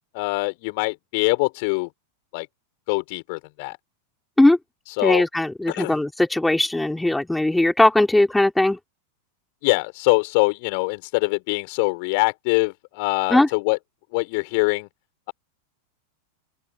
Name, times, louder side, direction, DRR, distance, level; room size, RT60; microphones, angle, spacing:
voice 1, 0.1-1.9 2.3-2.5 2.9-3.8 4.9-5.2 5.7-6.0 9.6-13.8 14.1-14.9, left 30 dB, 45° left, 4.7 m, -23 dB
voice 2, 5.0-8.8 13.3-13.5, left 1 dB, 5° left, 4.9 m, -19 dB
open air
figure-of-eight pair, 90°, 0 cm